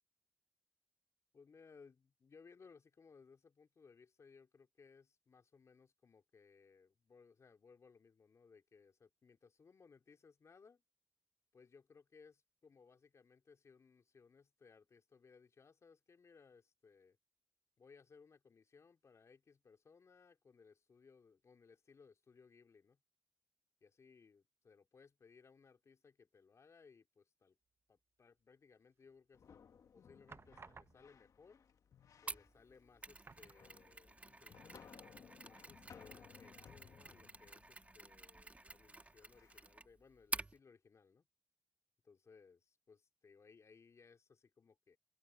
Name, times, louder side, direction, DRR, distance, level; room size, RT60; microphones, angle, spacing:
voice 1, 1.3-10.8 11.5-17.2 17.8-23.0 23.8-27.6 27.9-29.6 29.9-31.6 32.2-34.8 35.4-41.3 42.0-45.0, left 5 dB, 55° left, 3.4 m, -64 dB
sound 1, 29.0-29.5 30.3-31.3 32.3-32.4 32.7-32.8 33.2-34.2 34.5-34.6 37.0-37.7 38.2-38.3, right 4 dB, 45° right, 0.9 m, -60 dB
sound 2, 29.3-39.6, left 7 dB, 70° left, 1.7 m, -62 dB
Mechanisms, 32.3-40.6, right 2 dB, 25° right, 1.9 m, -49 dB
open air
cardioid pair, 60°, 6 cm